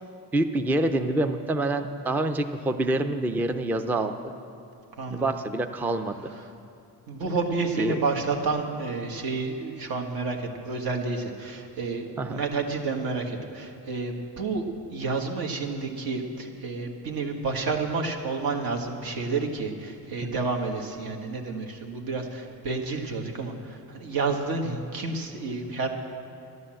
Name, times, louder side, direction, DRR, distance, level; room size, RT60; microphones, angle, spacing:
voice 1, 0.3-4.1 5.1-6.3 7.8-8.0 12.2-12.4 20.2-20.3, right 2 dB, 5° right, 8 dB, 0.3 m, -26 dB
voice 2, 7.1-14.7 14.9-25.9, right 4 dB, 65° right, 2 dB, 1.7 m, -30 dB
12.5 x 11.0 x 7.6 m, 2.7 s
cardioid pair, 150°, 39 cm